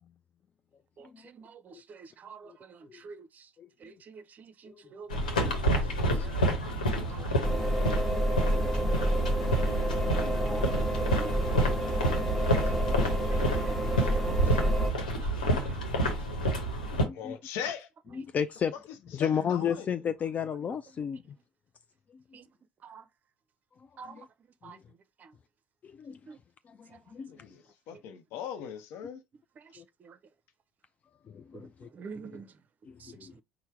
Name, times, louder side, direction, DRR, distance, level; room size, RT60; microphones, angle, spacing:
voice 1, 1.0-3.5 3.8-5.7 6.1-6.4 6.9-7.8 8.4-8.6 10.5-10.6 12.0-12.1 12.4-12.5 13.3-13.8 14.1-15.8 22.3-22.5 22.8-23.0 24.0-24.2 24.6-24.8 25.2-25.3 26.3-26.4 30.0-30.2 31.5-31.6 31.9-32.5 33.0-33.1, right 5 dB, 40° right, 0.5 m, -48 dB
voice 2, 3.6-4.0 5.0-5.1 6.0-6.5 7.0-7.3 8.4-8.8 10.2-10.5 15.4-15.5 16.9-17.4 18.1-18.7 19.0-21.2 22.1-22.2 23.8-24.3 24.6-24.8 25.8-26.2 26.7-27.3 29.8-29.9 31.3-31.9 32.9-33.4, left 8 dB, 35° left, 0.3 m, -35 dB
sound 1, 5.1-17.0, right 1 dB, 90° left, 1.0 m, -29 dB
sound 2, 7.4-14.9, right 1 dB, 5° left, 1.1 m, -29 dB
voice 3, 17.1-17.9 19.2-19.9 27.3-29.2, left 8 dB, 65° left, 0.7 m, -39 dB
4.4 x 2.1 x 4.4 m
hypercardioid pair, 65°, 4 cm